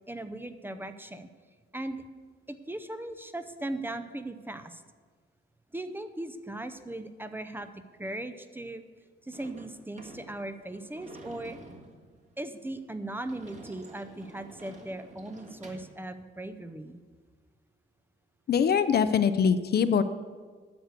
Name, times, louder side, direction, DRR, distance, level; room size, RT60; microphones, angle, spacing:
voice 1, 0.1-1.3 1.7-2.0 2.5-4.8 5.7-7.7 8.0-8.8 9.2-11.6 12.4-17.0, right 1 dB, 10° right, 9 dB, 0.6 m, -38 dB
Sliding door / Slam, 9.3-16.0, right 2 dB, 35° right, 1.7 m, -50 dB
voice 2, 18.5-20.0, left 7 dB, 50° left, 12 dB, 0.6 m, -23 dB
10.5 x 6.6 x 8.1 m, 1.5 s
cardioid pair, 120°, 21 cm